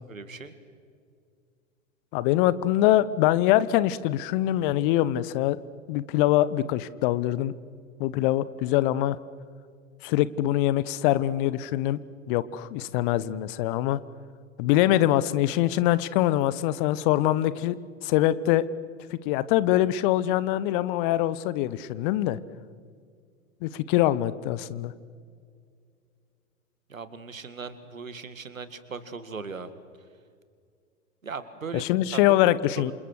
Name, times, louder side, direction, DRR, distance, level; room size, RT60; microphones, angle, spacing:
voice 1, 0.1-0.5 26.9-29.7 31.2-32.3 32.9-33.0, right 5 dB, 80° right, 12 dB, 2.2 m, -38 dB
voice 2, 2.1-5.6 5.9-7.5 8.0-9.2 10.0-12.0 12.3-14.0 14.6-17.8 18.0-18.6 19.1-22.4 23.6-24.9 31.7-32.9, left 14 dB, 40° left, 17 dB, 1.1 m, -23 dB
28.5 x 27.5 x 6.6 m, 2.2 s
figure-of-eight pair, 95°, 40 cm